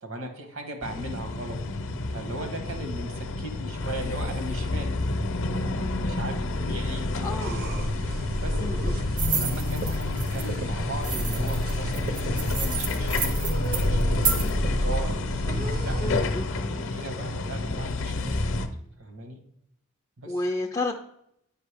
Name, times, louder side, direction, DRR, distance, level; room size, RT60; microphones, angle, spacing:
voice 1, 0.0-1.6 2.1-4.9 5.5-7.7 8.3-8.6 9.3-15.1 15.8-16.0 16.8-18.4 19.0-19.4 20.2-20.4, right 1 dB, 60° right, 5 dB, 1.2 m, -38 dB
sound 1, 0.8-18.7, left 2 dB, 60° left, 0.7 m, -29 dB
voice 2, 7.2-7.6 8.6-9.0 16.0-16.5 20.3-20.9, left 2 dB, 15° left, 0 dB, 0.4 m, -30 dB
sound 2, 7.4-16.2, equal, 40° right, 0.7 m, -30 dB
sound 3, 9.2-10.5 11.0-14.5, right 6 dB, 85° right, 1.1 m, -30 dB
8.6 x 5.3 x 3.4 m, 0.76 s
head